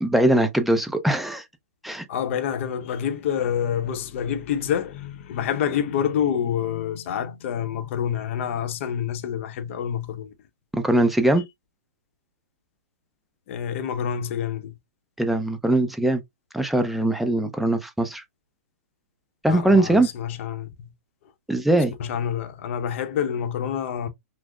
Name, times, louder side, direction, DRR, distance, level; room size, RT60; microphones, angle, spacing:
voice 1, 0.0-1.4 1.8-2.0 10.7-11.5 15.2-16.2 16.5-18.2 19.4-20.1 21.5-21.9, right 1 dB, ahead, 0.5 m, -21 dB
voice 2, 2.1-10.3 13.5-14.8 19.5-20.9 22.0-24.1, left 8 dB, 55° left, 0.7 m, -27 dB
6.0 x 2.0 x 2.3 m
hypercardioid pair, 135°, 9 cm